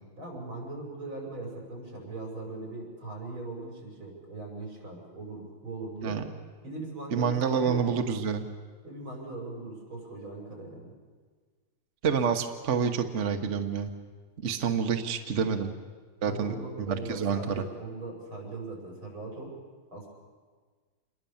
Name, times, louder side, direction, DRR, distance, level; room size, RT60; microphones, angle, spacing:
voice 1, 0.2-6.2 6.6-7.9 8.8-10.9 15.4-15.7 16.3-19.6 19.9-20.1, right 3 dB, 70° right, 0 dB, 7.3 m, -39 dB
voice 2, 7.1-8.5 12.0-13.9 14.4-15.7 16.2-17.6, right 6 dB, 40° right, 5 dB, 1.2 m, -28 dB
27.5 x 21.0 x 7.2 m, 1.5 s
omnidirectional pair, 2.3 m